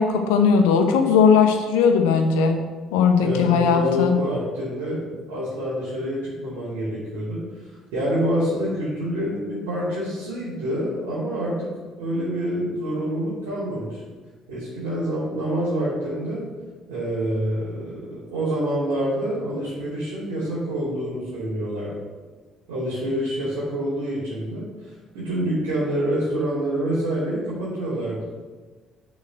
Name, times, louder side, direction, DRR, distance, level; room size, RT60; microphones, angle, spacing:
voice 1, 0.0-2.6 2.9-4.1, left 6 dB, 75° left, 5 dB, 0.8 m, -18 dB
voice 2, 3.2-7.4 7.9-14.0 14.5-16.4 16.9-21.9 22.7-24.7 25.1-28.2, equal, 75° right, -11 dB, 2.8 m, -27 dB
6.6 x 5.1 x 6.5 m, 1.4 s
figure-of-eight pair, 50°, 0 cm